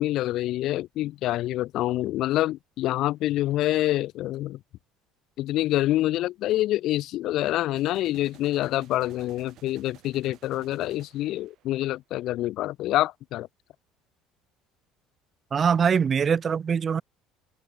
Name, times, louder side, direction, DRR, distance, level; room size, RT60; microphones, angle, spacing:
voice 1, 0.0-4.6 5.4-13.5, left 15 dB, 50° left, 0.3 m, -26 dB
sound 1, 3.0-3.1 7.8-11.9, right 14 dB, 50° right, 4.4 m, -54 dB
voice 2, 15.5-17.0, right 6 dB, 25° right, 0.5 m, -23 dB
open air
cardioid pair, 165°, 0 cm